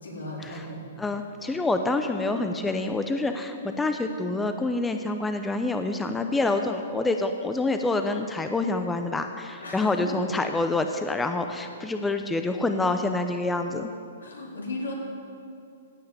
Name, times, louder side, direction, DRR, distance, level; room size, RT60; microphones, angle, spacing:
voice 1, 0.0-0.8 9.6-9.9 14.2-14.9, left 2 dB, 85° left, -2 dB, 3.6 m, -36 dB
voice 2, 1.0-13.9, left 2 dB, 10° left, 6 dB, 0.7 m, -27 dB
16.0 x 5.7 x 8.3 m, 2.5 s
hypercardioid pair, 130°, 0 cm